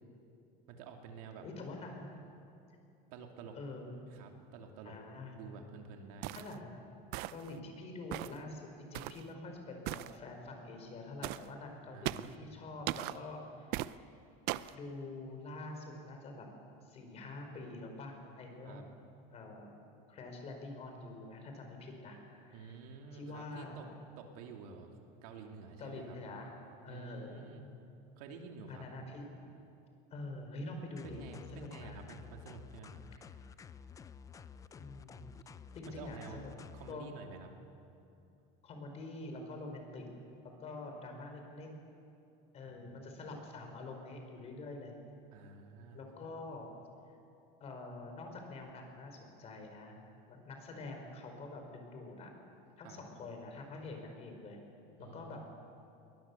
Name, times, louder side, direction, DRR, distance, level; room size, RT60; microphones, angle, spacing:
voice 1, 0.7-1.4 3.1-3.6 4.1-5.0 5.4-6.3 11.9-12.5 18.6-18.8 22.5-23.9 24.2-24.9 25.2-26.2 26.9-27.6 28.2-28.8 31.0-33.0 35.9-36.4 36.7-37.5 42.6-43.2 45.3-46.0 52.8-53.0 55.0-55.5, right 5 dB, 80° right, 3 dB, 2.7 m, -50 dB
voice 2, 1.4-2.2 3.5-3.9 4.8-5.3 6.3-6.8 7.3-13.7 14.7-16.5 16.8-18.9 19.3-19.8 20.1-22.8 23.1-23.8 25.8-26.5 26.8-27.4 28.7-29.3 30.1-31.2 31.5-32.0 34.8-35.3 35.7-36.5 36.9-37.1 38.6-40.1 40.4-41.7 42.5-44.9 45.9-46.7 47.6-50.0 50.3-52.3 52.8-54.6 55.0-55.5, left 2 dB, 35° left, 3 dB, 4.4 m, -46 dB
sound 1, 6.2-6.6 7.1-7.5 8.1-8.4 8.9-9.2 9.9-10.1 11.2-11.5 12.1-12.4 12.9-13.2 13.7-13.9 14.5-14.8, right 17 dB, 55° right, 0.6 m, -38 dB
sound 2, 31.0-36.9, left 7 dB, 15° left, 0.5 m, -52 dB
22.0 x 20.5 x 7.0 m, 2.6 s
cardioid pair, 145°, 19 cm